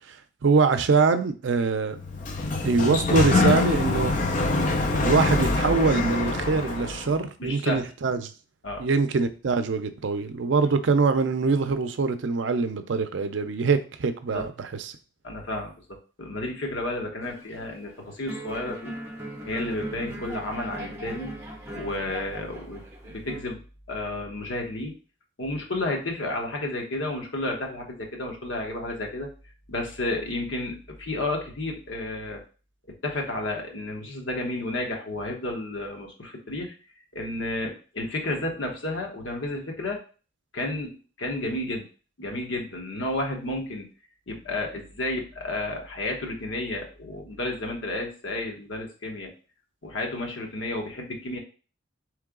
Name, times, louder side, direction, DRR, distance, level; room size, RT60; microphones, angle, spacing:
voice 1, 0.4-2.0 2.6-4.1 5.0-8.2 8.8-14.9, right 4 dB, 70° right, 0.5 m, -23 dB
Sliding door, 2.0-7.1, left 3 dB, 40° left, 0.5 m, -24 dB
voice 2, 7.4-7.8 8.6-8.8 14.3-14.5 15.2-19.0 19.5-21.4 21.7-23.6 23.9-24.9 25.4-29.3 29.7-32.4 33.0-36.7 37.1-40.0 40.5-41.9 42.2-43.9 44.3-49.3 49.8-51.4, left 2 dB, 75° left, 1.0 m, -31 dB
sound 1, 17.2-17.9 18.3-23.4, right 1 dB, 15° right, 0.8 m, -38 dB
3.8 x 3.2 x 3.6 m
head